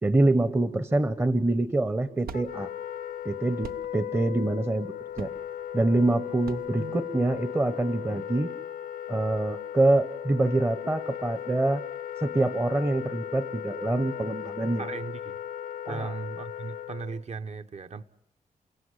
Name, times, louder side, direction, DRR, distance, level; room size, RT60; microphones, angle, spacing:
voice 1, 0.0-2.7 3.2-5.3 5.7-8.5 9.1-11.8 12.2-14.8 15.9-16.1, right 2 dB, 15° right, 0.9 m, -25 dB
sound 1, 1.4-7.6, right 5 dB, 85° right, 1.1 m, -46 dB
Wind instrument woodwind instrument, 2.3-17.2, left 10 dB, 85° left, 1.2 m, -37 dB
voice 2, 14.8-15.4 15.9-18.0, right 4 dB, 45° right, 1.1 m, -37 dB
30.0 x 16.5 x 9.8 m
wide cardioid pair, 120°, 15 cm